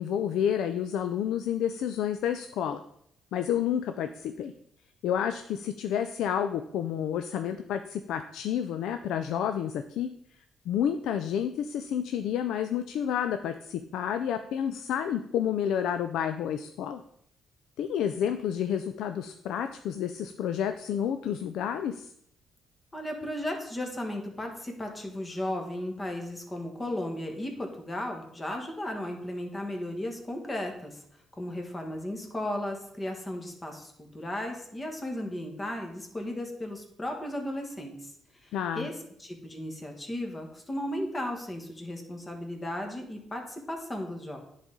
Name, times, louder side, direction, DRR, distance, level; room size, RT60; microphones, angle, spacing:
voice 1, 0.0-2.8 3.3-4.5 5.0-10.1 10.7-17.0 17.8-22.1 38.5-38.9, left 9 dB, 85° left, 8 dB, 0.3 m, -30 dB
voice 2, 22.9-31.0 31.4-38.1 38.4-38.9 39.2-44.4, left 1 dB, 25° left, 2 dB, 1.5 m, -35 dB
10.0 x 4.1 x 3.7 m, 0.71 s
cardioid pair, 90°, 0 cm